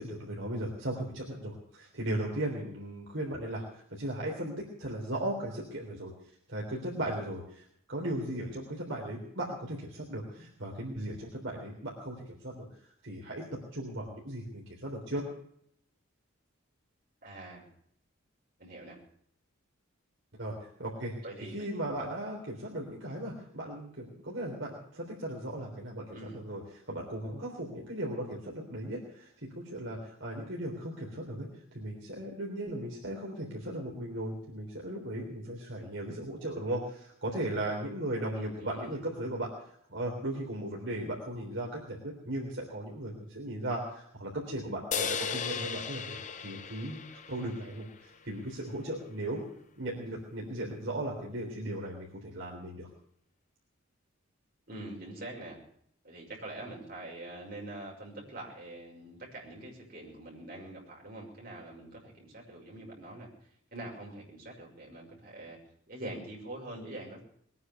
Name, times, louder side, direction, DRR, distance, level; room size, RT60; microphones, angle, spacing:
voice 1, 0.0-6.1 6.5-12.7 13.0-13.5 13.7-15.3 20.3-49.4 49.8-52.9, right 1 dB, 60° right, -2 dB, 3.6 m, -37 dB
voice 2, 17.2-17.6 18.6-19.0 21.2-21.7 26.1-26.4 38.3-39.0 54.7-55.6 56.0-63.3 63.7-65.6 65.9-67.2, right 1 dB, 45° right, -2 dB, 6.0 m, -44 dB
sound 1, 44.9-48.4, left 6 dB, 35° left, 0.7 m, -36 dB
21.5 x 9.6 x 6.9 m, 0.68 s
head